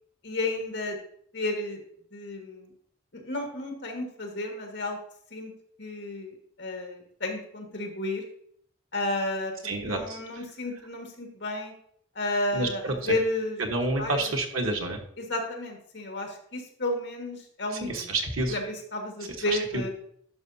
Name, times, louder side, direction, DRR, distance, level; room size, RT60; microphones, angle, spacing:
voice 1, 0.2-1.0 1.3-1.8 2.1-2.7 3.1-5.0 5.3-5.5 5.8-8.2 8.9-11.7 12.2-13.6 14.0-14.2 15.2-18.1 18.5-19.9, left 2 dB, 60° left, 2 dB, 1.7 m, -32 dB
voice 2, 9.6-10.2 12.5-13.1 13.6-15.0 17.8-18.6, right 2 dB, 90° right, 2 dB, 1.3 m, -29 dB
11.0 x 5.6 x 2.7 m, 0.65 s
head